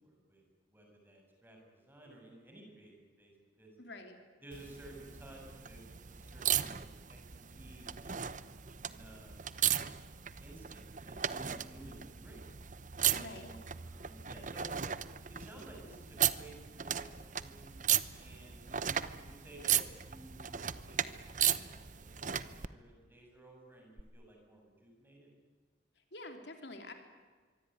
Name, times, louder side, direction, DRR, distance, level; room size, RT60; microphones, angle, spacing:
voice 1, 0.0-0.4 0.7-2.9 3.2-3.7 4.4-7.2 7.5-8.3 8.8-9.4 10.4-12.4 13.0-14.8 15.3-17.8 18.2-25.3, right 1 dB, 10° right, 0 dB, 7.7 m, -55 dB
voice 2, 3.8-4.2 13.1-13.6 26.0-26.9, left 2 dB, 65° left, 5 dB, 3.3 m, -48 dB
sound 1, 4.5-22.7 24.0-24.1, right 10 dB, 45° right, 0.9 m, -36 dB
25.0 x 24.0 x 9.6 m, 1.5 s
head